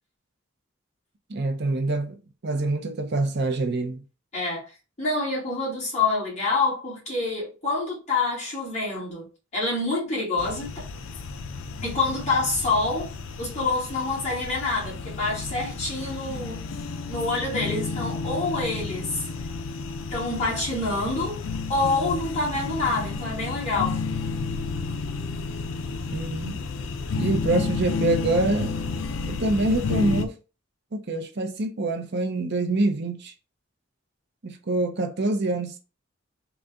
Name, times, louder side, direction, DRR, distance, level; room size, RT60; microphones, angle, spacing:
voice 1, 1.3-2.2 2.4-4.0 26.1-26.6 27.2-28.7 29.3-30.4 30.9-33.3 34.4-35.8, right 2 dB, 60° right, 0.7 m, -25 dB
voice 2, 4.3-4.7 5.0-9.3 9.5-10.9 11.8-13.1 13.4-16.6 17.1-19.2 20.1-21.4 21.7-24.0, left 3 dB, 35° left, 2.0 m, -27 dB
sound 1, 10.4-30.3, left 4 dB, 75° left, 0.5 m, -31 dB
3.9 x 2.3 x 3.5 m
head